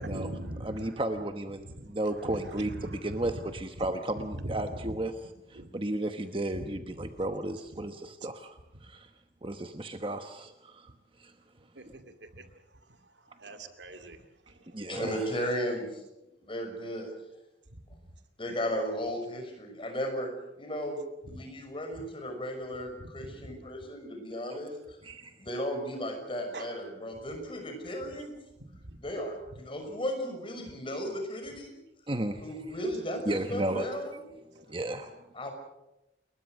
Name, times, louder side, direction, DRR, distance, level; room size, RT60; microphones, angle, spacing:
voice 1, 0.0-0.8 1.7-1.9 2.2-3.4 4.2-5.0 5.6-5.7 6.5-7.1 7.7-7.9 11.8-12.5 13.4-14.2 17.7-17.8 21.2-21.4 23.0-23.5 26.5-26.7 28.8-29.0 34.5-34.6, right 1 dB, 85° right, 7 dB, 2.4 m, -41 dB
voice 2, 0.6-9.1 9.4-10.9 11.2-11.3 14.7-15.4 25.0-25.3 32.1-32.4 33.3-33.9 34.7-35.1, right 1 dB, 30° right, 7 dB, 1.1 m, -34 dB
voice 3, 14.9-16.0 16.3-17.1 18.4-20.3 20.6-21.0 21.3-25.0 25.4-28.3 29.0-31.7 32.4-34.2 35.3-35.5, equal, 30° left, 4 dB, 6.0 m, -35 dB
29.5 x 21.5 x 6.4 m, 0.91 s
head